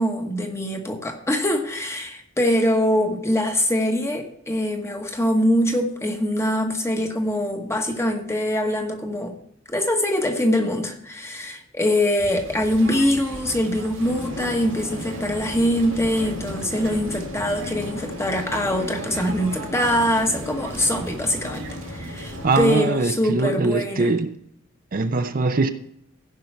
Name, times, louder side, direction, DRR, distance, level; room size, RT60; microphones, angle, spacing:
voice 1, 0.0-9.3 9.7-24.1, left 1 dB, 15° left, 1.2 m, -23 dB
sound 1, 12.2-22.7, right 2 dB, 85° right, 2.1 m, -37 dB
Drum, 14.0-23.0, left 1 dB, 80° left, 1.4 m, -37 dB
voice 2, 22.4-24.4 24.9-25.7, right 3 dB, 45° right, 0.6 m, -22 dB
16.0 x 5.4 x 4.5 m
head